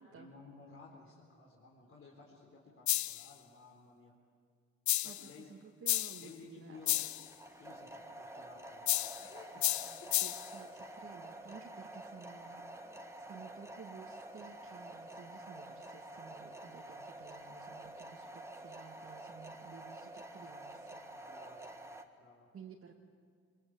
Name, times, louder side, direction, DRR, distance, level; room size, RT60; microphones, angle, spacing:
voice 1, 0.1-4.1 5.0-5.5 6.1-7.0 7.6-9.7 12.6-13.1 21.2-21.7 22.2-22.5, left 3 dB, 45° left, -3 dB, 4.1 m, -56 dB
sound 1, 2.9-3.3 4.9-5.3 5.9-6.3 6.9-7.3 8.9-9.3 9.6-10.5, left 14 dB, 70° left, 0.6 m, -32 dB
voice 2, 5.0-7.1 10.2-12.9 13.2-21.0 22.5-23.0, right 6 dB, 50° right, -1 dB, 2.1 m, -54 dB
sound 2, 6.7-22.0, right 1 dB, 10° right, 1.8 m, -49 dB
25.0 x 22.5 x 8.5 m, 2.1 s
cardioid pair, 90°, 30 cm